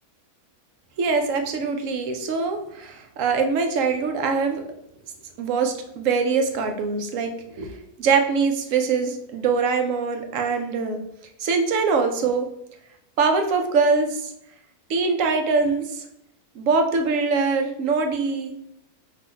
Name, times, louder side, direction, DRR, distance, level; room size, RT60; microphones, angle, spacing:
voice 1, 1.0-4.6 5.4-11.0 11.4-12.5 13.2-14.3 14.9-16.0 16.5-18.5, right 4 dB, 65° right, 5 dB, 0.9 m, -23 dB
4.1 x 2.7 x 4.3 m, 0.77 s
omnidirectional pair, 1.6 m